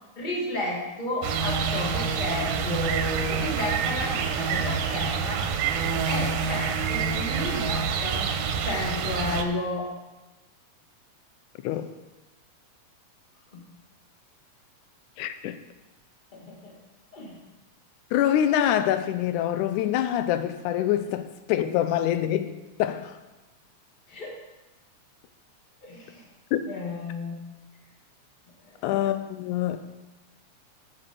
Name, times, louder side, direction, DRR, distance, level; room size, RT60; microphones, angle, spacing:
voice 1, 0.2-5.4 6.1-8.3 8.6-9.9 13.5-13.6 16.3-16.7 17.1-17.4 24.1-24.4 25.8-26.2 26.7-27.4 28.6-28.8, left 1 dB, 20° left, 1.8 m, -32 dB
sound 1, 1.2-9.4, right 6 dB, 90° right, 2.2 m, -27 dB
voice 2, 15.2-15.6 18.1-23.2 26.5-26.6 28.8-29.8, left 11 dB, 85° left, 2.0 m, -25 dB
10.0 x 7.6 x 5.3 m
omnidirectional pair, 3.5 m